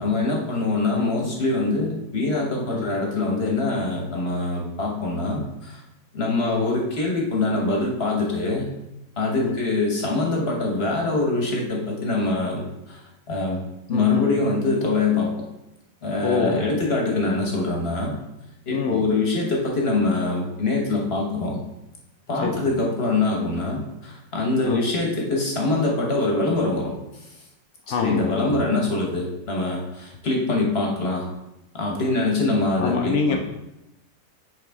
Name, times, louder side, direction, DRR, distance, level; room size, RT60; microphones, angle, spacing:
voice 1, 0.0-5.8 6.1-8.7 9.2-13.0 13.3-13.6 13.9-15.3 16.0-18.1 18.7-21.6 22.3-26.9 28.0-31.2 31.7-33.4, left 3 dB, 40° left, -1 dB, 1.2 m, -24 dB
voice 2, 0.9-1.3 2.7-2.9 6.4-6.7 9.4-9.6 13.9-14.3 16.2-16.7 18.7-19.0 22.3-22.7 24.6-24.8 27.9-28.7 32.8-33.4, left 5 dB, 70° left, 3 dB, 0.7 m, -26 dB
6.4 x 4.7 x 3.5 m, 0.91 s
omnidirectional pair, 1.8 m